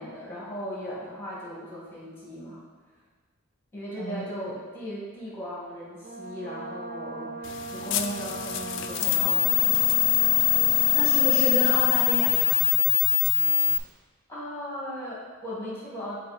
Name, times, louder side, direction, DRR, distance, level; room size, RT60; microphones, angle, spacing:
voice 1, 0.0-2.6 3.7-10.0 14.3-16.2, equal, 10° left, -7 dB, 1.7 m, -37 dB
Brass instrument, 6.0-11.9, right 3 dB, 45° right, 0.7 m, -38 dB
sound 1, 7.4-13.8, left 18 dB, 60° left, 0.3 m, -23 dB
voice 2, 10.9-12.9, equal, 90° right, -5 dB, 1.7 m, -31 dB
5.9 x 4.4 x 4.1 m, 1.4 s
head